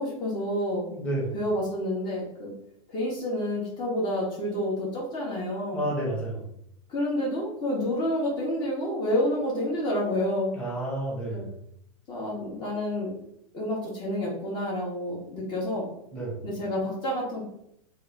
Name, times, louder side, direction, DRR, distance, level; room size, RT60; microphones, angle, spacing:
voice 1, 0.0-0.9 1.3-2.5 2.9-5.8 6.9-10.5 11.3-11.4 12.1-13.1 13.5-15.8 16.4-17.4, left 1 dB, 25° left, -5 dB, 1.1 m, -29 dB
voice 2, 1.0-1.3 5.7-6.5 10.5-11.5 16.1-16.4, right 1 dB, 5° left, -6 dB, 1.2 m, -30 dB
3.4 x 2.5 x 3.5 m, 0.74 s
supercardioid pair, 145°, 18 cm